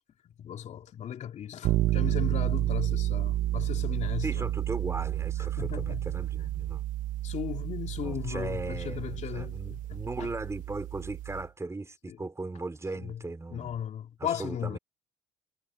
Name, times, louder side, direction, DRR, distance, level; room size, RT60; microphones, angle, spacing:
voice 1, 0.2-4.5 5.6-6.2 7.2-10.3 12.1-12.2 13.0-13.2 13.5-14.8, left 9 dB, 55° left, 2.9 m, -36 dB
sound 1, 1.6-11.5, right 14 dB, 70° right, 1.2 m, -31 dB
voice 2, 4.2-6.8 7.9-13.8 14.2-14.8, right 3 dB, 20° right, 4.5 m, -37 dB
supercardioid pair, 70°, 14 cm